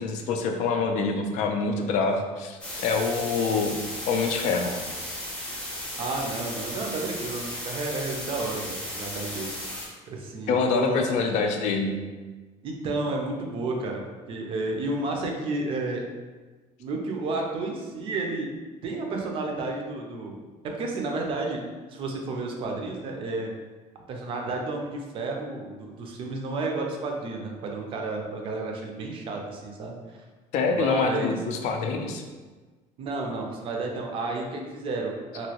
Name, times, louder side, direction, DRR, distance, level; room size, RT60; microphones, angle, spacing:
voice 1, 0.0-4.7 10.5-12.0 30.5-32.2, left 4 dB, 60° left, 4 dB, 0.4 m, -26 dB
sound 1, 2.6-9.9, left 1 dB, 5° left, 0.6 m, -35 dB
voice 2, 6.0-9.5 10.1-11.0 12.6-14.0 14.3-16.0 16.8-18.5 18.8-20.4 20.7-21.6 21.9-23.5 24.1-30.2 30.7-31.4 33.0-35.5, right 3 dB, 40° right, 1 dB, 0.4 m, -31 dB
2.9 x 2.6 x 2.8 m, 1.3 s
cardioid pair, 175°, 14 cm